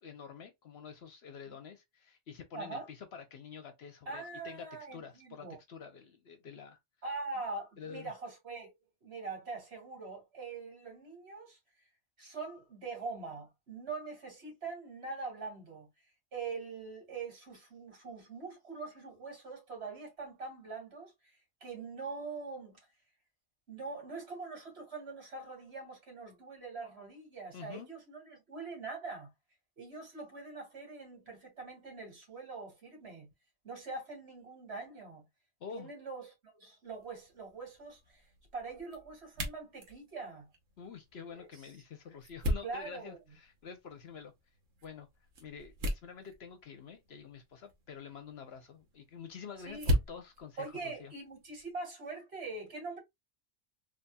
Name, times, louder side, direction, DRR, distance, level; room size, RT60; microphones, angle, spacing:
voice 1, 0.0-6.8 7.8-8.1 27.5-27.9 35.6-35.9 40.8-44.3 44.8-45.1 45.4-51.1, left 6 dB, 60° left, 0.9 m, -48 dB
voice 2, 2.5-2.9 4.1-5.6 7.0-8.7 9.0-11.6 12.2-15.9 16.3-21.1 21.6-22.8 23.7-29.3 29.8-33.3 33.6-35.3 35.7-38.2 38.5-40.5 41.3-41.5 42.6-43.2 49.7-49.9 50.6-53.0, right 4 dB, 60° right, 2.1 m, -43 dB
sound 1, 36.8-51.7, equal, 80° right, 1.4 m, -40 dB
4.0 x 2.9 x 2.2 m
omnidirectional pair, 1.3 m